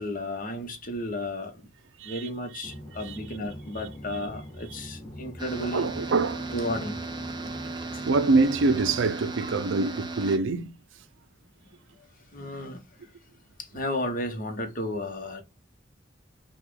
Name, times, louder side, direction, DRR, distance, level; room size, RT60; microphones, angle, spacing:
voice 1, 0.0-1.6 2.0-5.9 6.5-7.1 7.9-8.0 12.3-13.1 13.6-15.4, left 1 dB, 45° left, 1.1 m, -33 dB
sound 1, 2.6-9.1, equal, 25° left, 1.2 m, -42 dB
sound 2, 5.4-10.4, right 3 dB, 25° right, 0.7 m, -36 dB
voice 2, 5.6-6.5 8.0-10.7, right 3 dB, 80° right, 0.5 m, -25 dB
5.6 x 2.4 x 3.8 m
head